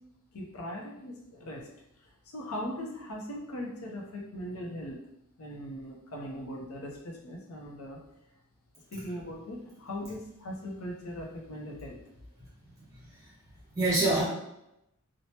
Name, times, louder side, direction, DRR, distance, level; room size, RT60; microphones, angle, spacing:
voice 1, 0.3-1.7 2.0-5.0 5.4-8.0 8.9-12.0, equal, 75° left, -1 dB, 0.6 m, -39 dB
voice 2, 12.9-13.3 13.7-14.2, right 2 dB, 15° right, -8 dB, 1.2 m, -27 dB
2.7 x 2.1 x 3.2 m, 0.83 s
head